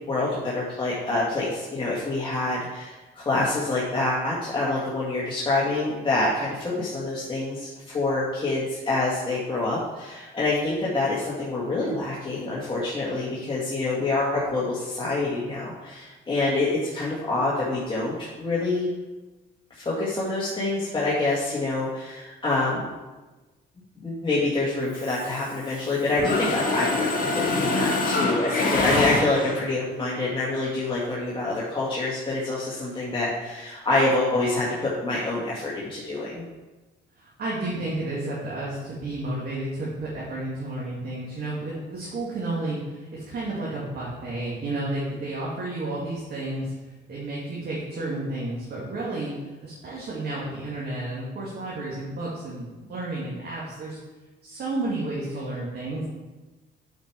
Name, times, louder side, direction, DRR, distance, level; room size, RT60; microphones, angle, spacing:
voice 1, 0.1-7.7 7.9-18.9 19.7-22.9 24.0-36.4, left 2 dB, 25° left, -7 dB, 2.0 m, -26 dB
Mechanisms, 24.9-25.9 26.2-29.7, left 2 dB, 45° left, 1.8 m, -25 dB
voice 2, 37.2-46.7 47.1-54.0 54.4-56.1, right 2 dB, 55° right, -6 dB, 2.2 m, -31 dB
8.9 x 5.2 x 4.7 m, 1.2 s
cardioid pair, 90°, 20 cm